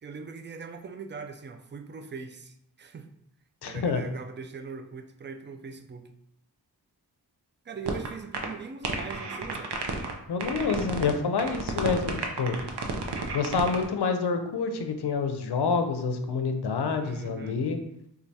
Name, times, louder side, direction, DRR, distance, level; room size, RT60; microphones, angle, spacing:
voice 1, 0.0-3.1 3.6-6.1 7.6-9.7 17.0-17.6, right 5 dB, 30° right, 7 dB, 0.3 m, -41 dB
voice 2, 3.6-4.0 10.3-12.6 13.3-17.8, left 5 dB, 75° left, 7 dB, 0.5 m, -27 dB
sound 1, 7.9-8.1 8.3-8.5 8.8-10.1 10.4-11.1 11.4-13.8, right 4 dB, 75° right, 0.6 m, -31 dB
4.5 x 2.4 x 2.7 m, 0.78 s
cardioid pair, 50°, 40 cm